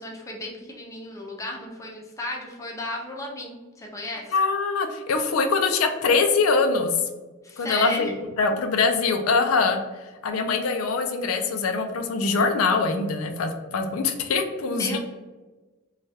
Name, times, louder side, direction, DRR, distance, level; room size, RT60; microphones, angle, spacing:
voice 1, 0.0-4.3 7.4-8.1 14.7-15.0, left 2 dB, 15° left, 0 dB, 0.5 m, -34 dB
voice 2, 4.3-6.9 7.6-9.8 10.2-15.0, left 4 dB, 90° left, 6 dB, 0.4 m, -23 dB
3.2 x 2.3 x 2.7 m, 1.2 s
head